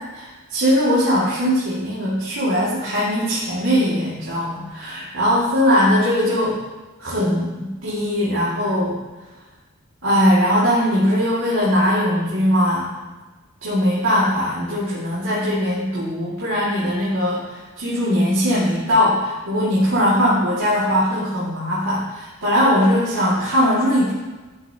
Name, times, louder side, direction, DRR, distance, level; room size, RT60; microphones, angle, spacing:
voice 1, 0.0-6.6 7.0-9.0 10.0-12.9 13.6-24.1, equal, 75° right, -10 dB, 2.2 m, -20 dB
12.0 x 7.2 x 2.9 m, 1.2 s
head